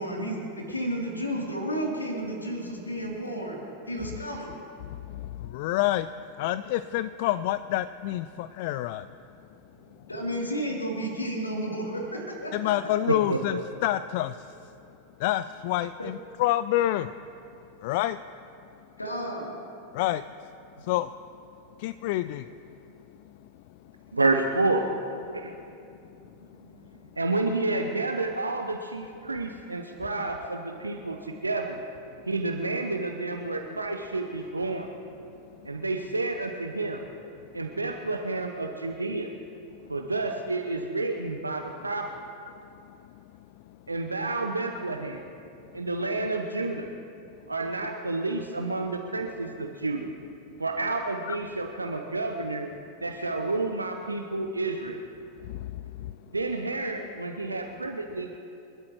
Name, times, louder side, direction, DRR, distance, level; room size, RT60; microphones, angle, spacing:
voice 1, 0.0-3.6 3.9-4.5 9.7-12.7 16.0-16.1 19.0-19.6 26.2-26.9, equal, 80° left, -1 dB, 3.2 m, -32 dB
voice 2, 4.8-6.1 6.4-9.1 12.5-14.5 15.2-17.1 17.8-18.2 19.9-20.2 20.8-21.1 21.8-22.5 51.3-51.4 55.4-56.1, left 14 dB, 50° left, 14 dB, 0.3 m, -28 dB
voice 3, 13.1-13.6 24.1-24.9 25.3-25.5 27.2-31.8 32.3-34.9 35.6-37.0 37.5-39.3 39.9-42.1 43.9-45.2 45.7-46.9 47.5-50.1 50.6-52.7 53.0-55.0 56.3-58.4, right 2 dB, 80° right, 4 dB, 0.9 m, -30 dB
29.0 x 12.5 x 3.1 m, 2.7 s
figure-of-eight pair, 90°, 0 cm